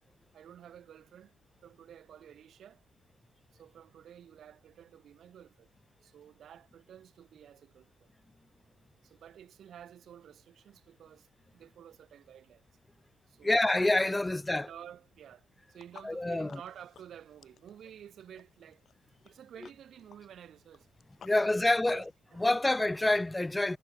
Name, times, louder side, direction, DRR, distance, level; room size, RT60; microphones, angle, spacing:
voice 1, 0.3-1.3 1.6-2.8 3.5-5.7 6.0-8.1 9.0-12.6 13.3-13.8 14.3-18.8 19.2-20.9 21.3-22.0 22.3-22.5, right 9 dB, 65° right, 6.6 m, -52 dB
voice 2, 13.4-14.7 16.0-16.6 21.2-22.0 22.4-23.8, left 2 dB, 15° left, 0.8 m, -27 dB
sound 1, 15.7-22.2, left 8 dB, 55° left, 4.9 m, -58 dB
cardioid pair, 90°, 0 cm